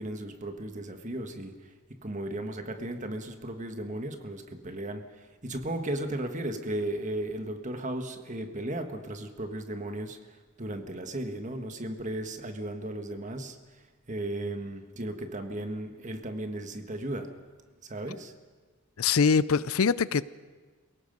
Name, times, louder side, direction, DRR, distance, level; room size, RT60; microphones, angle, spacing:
voice 1, 0.0-1.6 1.9-10.2 10.6-13.6 14.1-17.3 17.8-18.3, right 1 dB, 35° right, 6 dB, 1.5 m, -35 dB
voice 2, 19.0-20.2, left 5 dB, 75° left, 18 dB, 0.5 m, -23 dB
27.5 x 17.5 x 5.4 m, 1.4 s
head